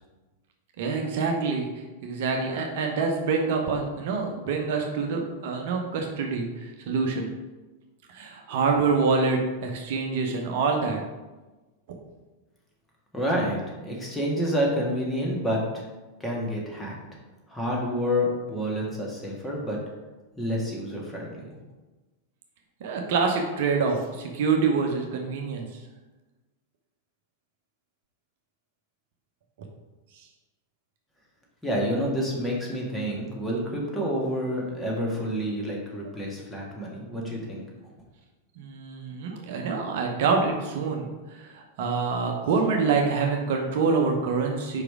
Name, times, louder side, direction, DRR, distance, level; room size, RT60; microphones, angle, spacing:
voice 1, 0.8-1.7 2.0-7.3 8.1-11.0 22.8-25.7 38.6-44.8, right 4 dB, 50° right, 2 dB, 0.8 m, -26 dB
voice 2, 13.1-15.8 16.2-16.9 17.5-19.8 20.4-21.5 31.6-37.6, equal, 10° left, -3 dB, 1.7 m, -28 dB
4.9 x 4.9 x 4.7 m, 1.2 s
figure-of-eight pair, 90°, 0 cm